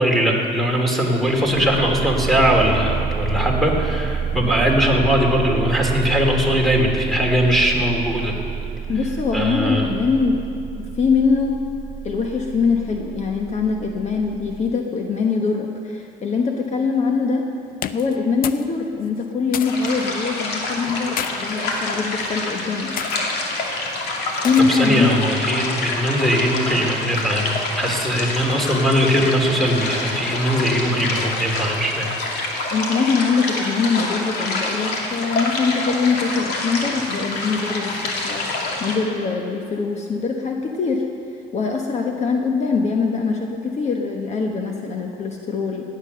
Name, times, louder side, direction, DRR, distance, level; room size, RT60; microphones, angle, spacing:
voice 1, 0.0-8.3 9.3-9.9 24.7-32.1 32.7-32.8, equal, ahead, 0 dB, 2.8 m, -20 dB
sound 1, 1.4-14.7, right 7 dB, 35° right, 1.0 m, -29 dB
voice 2, 8.9-10.4 10.8-11.6 12.0-17.4 17.9-23.0 24.4-25.2 32.7-41.1 41.5-45.8, left 5 dB, 40° left, 2 dB, 1.2 m, -22 dB
sound 2, 17.7-18.7 19.0-19.9 20.8-21.3 22.1-22.4 23.0-23.2 24.4-24.9, left 10 dB, 55° left, 0.6 m, -31 dB
sound 3, 19.6-39.0, left 2 dB, 75° left, 2.5 m, -27 dB
17.0 x 9.7 x 6.7 m, 2.5 s
cardioid pair, 110°, 17 cm